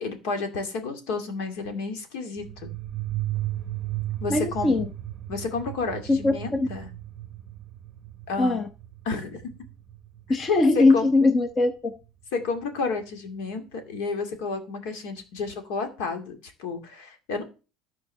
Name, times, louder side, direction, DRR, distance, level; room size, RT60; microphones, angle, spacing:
voice 1, 0.0-2.5 4.2-4.7 5.3-6.9 8.3-8.6 9.0-9.4 10.7-11.1 12.3-17.4, left 4 dB, 70° left, 2.4 m, -31 dB
sound 1, 2.4-10.8, right 15 dB, 25° right, 0.9 m, -35 dB
voice 2, 4.3-4.9 6.1-6.7 8.4-8.7 10.3-11.9, left 3 dB, 20° left, 0.9 m, -21 dB
13.0 x 4.6 x 6.8 m
cardioid pair, 170°, 0 cm